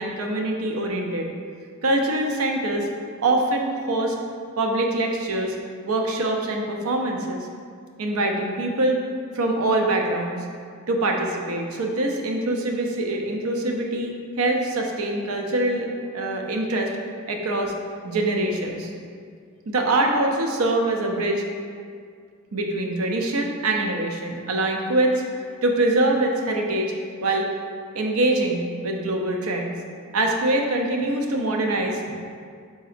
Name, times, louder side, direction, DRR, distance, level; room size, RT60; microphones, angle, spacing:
voice 1, 0.0-1.3 1.8-2.9 3.2-4.1 4.6-5.6 5.8-7.5 8.0-9.0 9.3-10.5 10.9-15.9 16.1-16.9 17.3-17.7 18.0-18.9 19.7-21.4 22.5-25.2 25.6-26.9 27.2-27.5 27.9-29.8 30.1-32.2, right 2 dB, 85° right, 1 dB, 0.5 m, -24 dB
4.8 x 4.0 x 2.5 m, 2.1 s
head